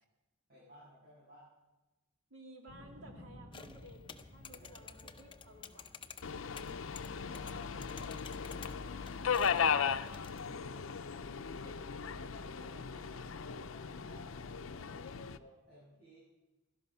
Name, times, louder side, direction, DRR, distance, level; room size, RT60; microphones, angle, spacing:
voice 1, 0.5-1.5 7.2-11.7 12.6-14.9 15.3-16.2, equal, 50° right, -8 dB, 7.0 m, -59 dB
voice 2, 2.3-5.9 11.6-13.1, right 1 dB, 75° right, 1 dB, 2.5 m, -56 dB
sound 1, 2.7-7.9 8.4-9.2, left 1 dB, 15° right, 4.7 m, -57 dB
sound 2, 3.5-10.5, left 6 dB, 25° left, 0.7 m, -53 dB
Subway metro underground, 6.2-15.4, left 6 dB, 70° left, 0.6 m, -37 dB
17.0 x 12.5 x 5.6 m, 1.1 s
head